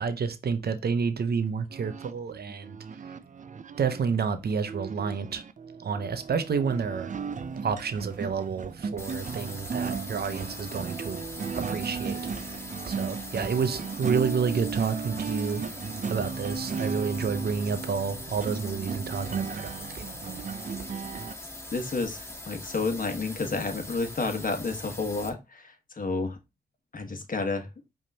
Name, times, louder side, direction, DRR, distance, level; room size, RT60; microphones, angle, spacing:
voice 1, 0.0-2.8 3.8-5.4 5.8-7.1 7.6-11.2 11.5-12.2 12.9-15.6 16.1-20.1, right 5 dB, 90° right, 0.7 m, -29 dB
sound 1, 1.7-21.3, right 6 dB, 50° right, 0.5 m, -36 dB
sound 2, 9.0-25.3, left 2 dB, 15° left, 1.6 m, -42 dB
voice 2, 21.7-26.4 26.9-27.7, left 3 dB, 60° left, 1.3 m, -30 dB
5.3 x 3.6 x 2.7 m
cardioid pair, 55°, 16 cm